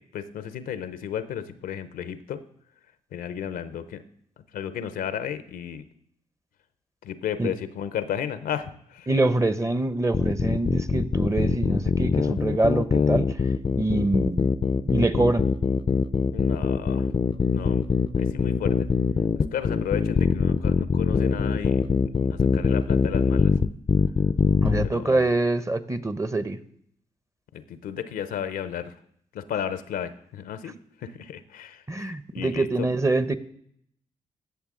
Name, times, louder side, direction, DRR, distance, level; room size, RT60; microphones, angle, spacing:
voice 1, 0.0-2.4 3.1-4.0 4.5-5.9 7.0-9.1 16.3-17.1 17.5-18.9 19.5-23.5 24.8-25.3 27.5-28.9 29.3-32.9, left 9 dB, 75° left, 13 dB, 0.7 m, -33 dB
voice 2, 9.1-14.5 14.9-15.4 24.6-26.6 31.9-33.4, right 2 dB, 20° right, 13 dB, 0.8 m, -25 dB
sound 1, 10.1-24.9, left 5 dB, 35° left, 0.5 m, -23 dB
15.0 x 6.9 x 3.7 m, 0.68 s
hypercardioid pair, 45°, 15 cm